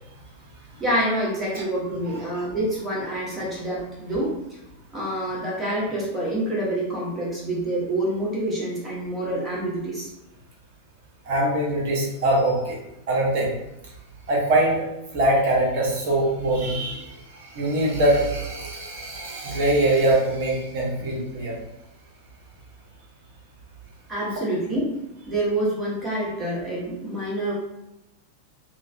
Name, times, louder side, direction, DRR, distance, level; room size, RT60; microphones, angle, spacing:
voice 1, 0.8-4.4 4.9-10.1 24.1-24.9 25.3-27.5, right 1 dB, 15° right, -6 dB, 1.2 m, -27 dB
voice 2, 11.3-12.8 13.1-13.5 14.3-14.8 15.1-17.1 17.5-21.6, right 1 dB, 50° right, -3 dB, 0.9 m, -22 dB
2.9 x 2.2 x 2.6 m, 0.91 s
figure-of-eight pair, 90°, 0 cm